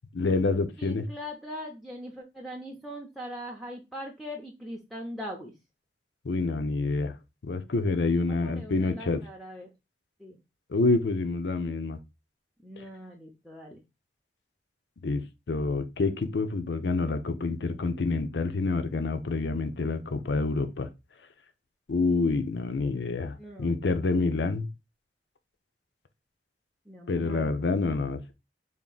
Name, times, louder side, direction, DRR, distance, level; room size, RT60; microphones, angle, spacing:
voice 1, 0.1-1.1 6.2-7.1 7.4-9.2 10.7-12.0 12.8-12.9 15.0-20.9 21.9-24.7 27.1-28.3, left 3 dB, 75° left, 0.6 m, -27 dB
voice 2, 0.8-5.5 8.4-9.7 10.2-10.4 12.6-13.8 23.4-23.7 26.9-27.6, equal, ahead, 0.5 m, -41 dB
3.6 x 2.5 x 3.8 m
head